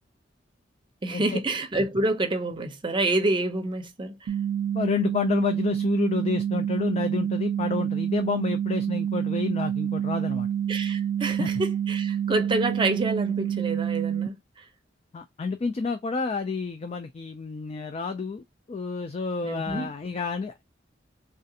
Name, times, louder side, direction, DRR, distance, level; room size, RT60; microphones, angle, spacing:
voice 1, 1.0-4.3 10.7-14.6 19.4-19.9, right 2 dB, 25° right, 0.6 m, -28 dB
sound 1, 4.3-14.3, right 9 dB, 90° right, 0.4 m, -27 dB
voice 2, 4.7-10.5 11.4-11.5 15.1-20.7, left 4 dB, 35° left, 0.3 m, -29 dB
3.2 x 2.4 x 2.7 m
head